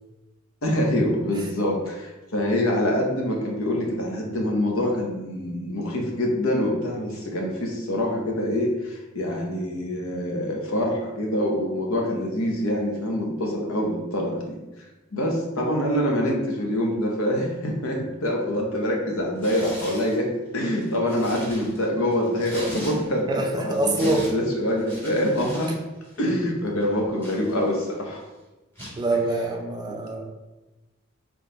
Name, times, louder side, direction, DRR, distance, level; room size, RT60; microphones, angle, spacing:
voice 1, 0.6-14.6 15.1-25.7 26.2-28.2 29.9-30.0, left 1 dB, 75° left, 0 dB, 0.9 m, -25 dB
Tearing, 19.4-20.2 20.7-23.3 23.6-25.8 26.0-26.3 26.8-28.0 28.8-29.0, equal, 10° left, 1.2 m, -40 dB
voice 2, 23.3-24.3 29.0-30.3, right 2 dB, 20° right, 3 dB, 0.4 m, -25 dB
3.8 x 3.1 x 3.9 m, 1.1 s
head